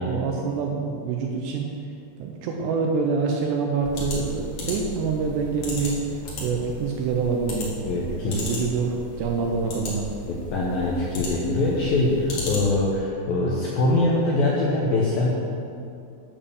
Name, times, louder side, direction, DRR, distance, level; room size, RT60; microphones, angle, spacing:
voice 1, 0.0-1.7 2.2-6.0 6.4-8.0 8.2-10.1, right 5 dB, 85° right, 1 dB, 2.6 m, -26 dB
sound 1, 3.8-13.0, left 1 dB, 50° left, 2.5 m, -35 dB
voice 2, 7.9-8.4 10.3-15.3, left 2 dB, 75° left, -5 dB, 2.2 m, -23 dB
9.0 x 5.4 x 6.9 m, 2.5 s
omnidirectional pair, 5.4 m